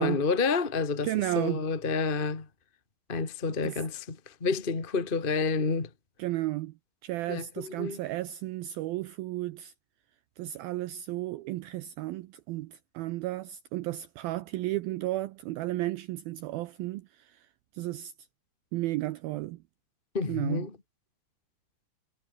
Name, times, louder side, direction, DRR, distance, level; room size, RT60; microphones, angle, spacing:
voice 1, 0.0-1.1 1.3-2.5 3.1-5.9 7.3-8.0 20.1-20.7, left 4 dB, 25° left, 1.1 m, -29 dB
voice 2, 1.0-1.7 3.6-3.8 6.2-6.7 7.0-9.7 10.4-17.5 17.7-18.1 18.7-19.6 20.3-20.7, right 16 dB, 90° right, 2.1 m, -33 dB
omnidirectional pair, 5.0 m